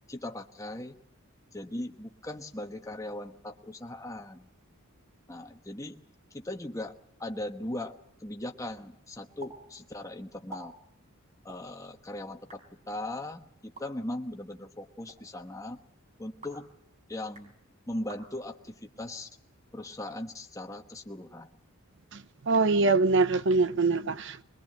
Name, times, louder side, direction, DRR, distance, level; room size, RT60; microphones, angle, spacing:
voice 1, 0.1-1.0 1.5-4.5 5.3-6.0 6.3-10.7 11.4-15.8 16.2-16.7 17.1-17.5 17.9-19.3 19.7-21.5 22.8-23.0, left 1 dB, 15° left, 1.1 m, -39 dB
sound 1, 9.4-9.5 9.8-9.9 10.3-10.6 11.4-11.6 12.3-12.6 13.6-13.8 14.9-15.2 16.2-16.7 17.2-17.5 18.0-18.2 18.9-19.1 19.8-20.5, right 2 dB, 30° right, 4.9 m, -49 dB
voice 2, 22.5-24.4, right 3 dB, 60° right, 0.8 m, -23 dB
22.0 x 22.0 x 7.8 m
head